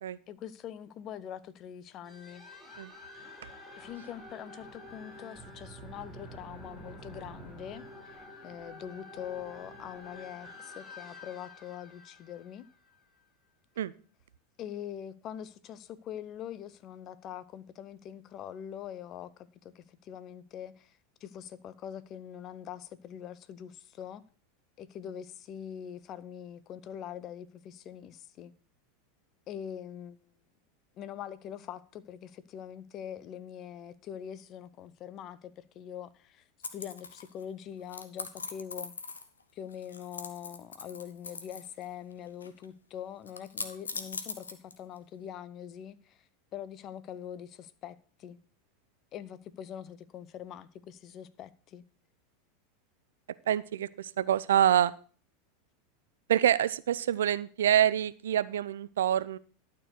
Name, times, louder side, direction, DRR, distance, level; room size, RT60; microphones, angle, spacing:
voice 1, 0.3-2.4 3.8-12.7 14.6-24.2 24.8-28.5 29.5-30.3 31.0-36.5 36.7-38.9 39.5-48.4 49.1-51.8, left 9 dB, 40° left, 0.7 m, -43 dB
sound 1, 2.0-13.3, left 1 dB, ahead, 5.0 m, -49 dB
sound 2, 36.6-37.4 37.9-39.4 39.7-41.8 42.1-42.7 43.3-45.0, left 4 dB, 85° left, 0.9 m, -41 dB
voice 2, 53.5-54.9 56.3-59.4, right 10 dB, 70° right, 0.4 m, -26 dB
12.0 x 4.6 x 6.5 m
figure-of-eight pair, 85°, 0 cm